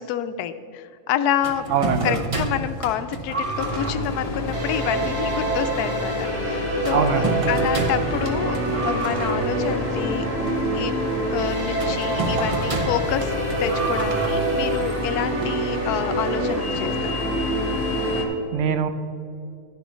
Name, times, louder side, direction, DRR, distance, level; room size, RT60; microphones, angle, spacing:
voice 1, 0.0-1.7 2.0-8.6 8.8-10.2 10.7-10.9 11.3-13.3 13.6-17.3, left 10 dB, 80° left, 11 dB, 1.1 m, -28 dB
sound 1, 1.4-16.1, right 2 dB, 35° right, 0.6 m, -31 dB
voice 2, 1.7-2.2 6.9-7.4 18.5-18.9, right 7 dB, 65° right, 10 dB, 0.8 m, -22 dB
sound 2, 3.6-18.3, left 3 dB, 30° left, 0.8 m, -30 dB
sound 3, 4.5-18.2, right 2 dB, 85° right, 2.5 m, -27 dB
11.5 x 10.5 x 3.1 m, 2.4 s
omnidirectional pair, 1.6 m